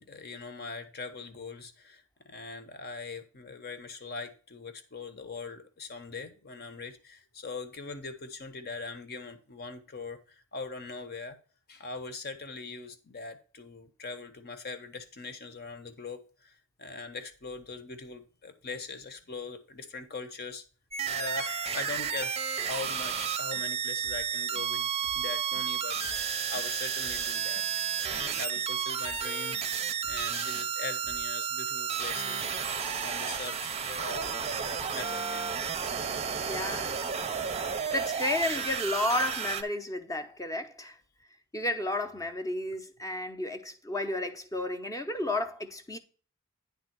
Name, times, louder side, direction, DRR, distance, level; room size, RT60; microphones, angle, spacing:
voice 1, 0.0-11.4 11.7-20.6 21.1-29.6 30.1-32.5 33.0-34.3 34.9-35.5, left 3 dB, 45° left, 1.1 m, -41 dB
sound 1, 20.9-39.6, right 7 dB, 30° right, 0.7 m, -32 dB
sound 2, 23.5-23.7 24.0-24.3 24.5-24.7 25.0-25.3 25.5-25.7 26.0-26.3 26.5-26.7 27.0-27.3 27.5-27.7 28.0-28.3 28.5-28.7 29.0-29.3 29.5-29.7 30.0-30.3 30.5-30.7 31.0-31.3, right 1 dB, 85° left, 2.6 m, -53 dB
voice 2, 36.4-36.9 37.6-40.9 41.5-46.0, left 1 dB, 15° left, 0.8 m, -32 dB
9.6 x 3.7 x 6.0 m
head